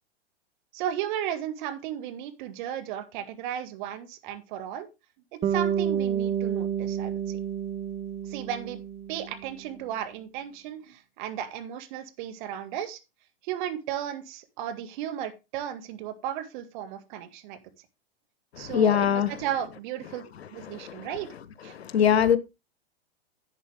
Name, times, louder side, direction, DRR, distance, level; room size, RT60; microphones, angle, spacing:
voice 1, 0.7-4.9 5.3-7.4 8.3-8.8 9.1-13.0 13.4-17.6 18.6-20.2 20.5-21.3 21.6-21.7, right 10 dB, 50° right, 2.0 m, -35 dB
Bass guitar, 5.4-9.7, right 9 dB, 20° right, 0.9 m, -30 dB
voice 2, 18.6-19.4 20.6-21.1 21.7-22.4, left 9 dB, 85° left, 1.2 m, -23 dB
11.5 x 8.1 x 3.6 m
hypercardioid pair, 120°, 31 cm